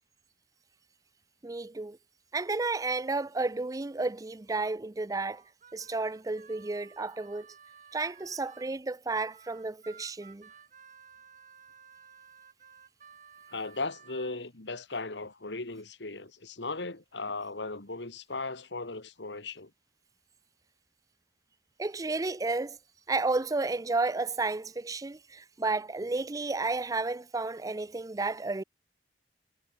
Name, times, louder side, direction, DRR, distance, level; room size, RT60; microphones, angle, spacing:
voice 1, 1.4-2.0 2.3-5.4 5.7-7.5 7.9-10.5 21.8-22.8 23.1-28.6, right 3 dB, 20° right, 0.5 m, -32 dB
Harmonica, 5.2-8.7 9.3-14.4, right 6 dB, 45° right, 3.1 m, -55 dB
voice 2, 13.5-19.7, left 3 dB, 75° left, 2.2 m, -37 dB
head